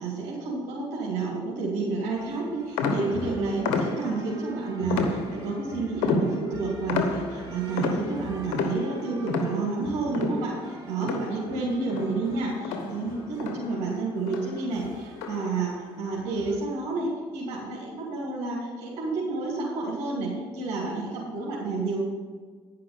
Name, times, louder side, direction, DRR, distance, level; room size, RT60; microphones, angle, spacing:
voice 1, 0.0-22.0, right 3 dB, 75° right, -5 dB, 2.6 m, -30 dB
sound 1, 2.1-16.6, right 3 dB, 35° right, 2.7 m, -45 dB
sound 2, 2.8-4.4 4.9-5.6 6.0-11.6 11.9-13.9 14.3-14.7 15.2-15.6, left 4 dB, 90° left, 1.1 m, -30 dB
10.5 x 5.8 x 6.8 m, 1.5 s
supercardioid pair, 70°, 12 cm